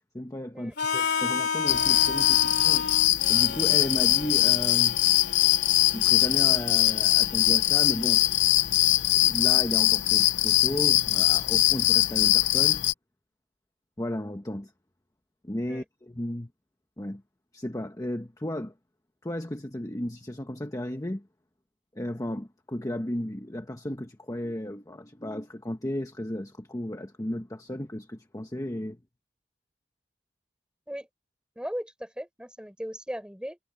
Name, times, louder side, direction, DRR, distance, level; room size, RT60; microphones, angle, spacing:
voice 1, 0.1-2.9 3.3-5.0 5.9-8.2 9.1-12.8 14.0-14.7 15.4-16.5 17.0-17.2 17.5-18.7 19.2-21.3 21.9-29.0, left 1 dB, 20° left, 1.2 m, -34 dB
Harmonica, 0.8-8.7, left 5 dB, 65° left, 3.1 m, -33 dB
sound 1, 1.7-12.9, left 15 dB, 90° left, 0.7 m, -22 dB
voice 2, 31.6-33.6, equal, 5° right, 5.2 m, -37 dB
head